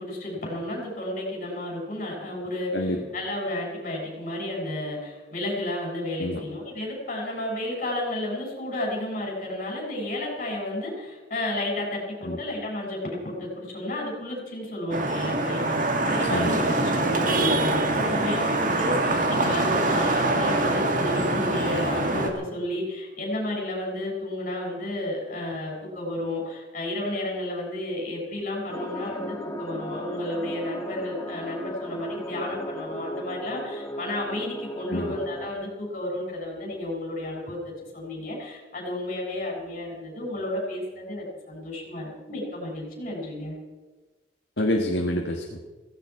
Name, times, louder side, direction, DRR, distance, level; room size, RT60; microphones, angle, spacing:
voice 1, 0.0-16.7 16.9-43.6, left 1 dB, 40° left, -1 dB, 7.0 m, -32 dB
Vehicle horn car horn honking / Traffic noise roadway noise, 14.9-22.3, right 2 dB, 45° right, 1.9 m, -24 dB
voice 2, 16.3-16.6 34.9-35.2 44.6-45.6, left 1 dB, 60° left, 1 dB, 1.5 m, -27 dB
sound 1, 28.7-35.5, equal, 15° left, 1.3 m, -36 dB
17.0 x 16.0 x 4.7 m, 1.2 s
head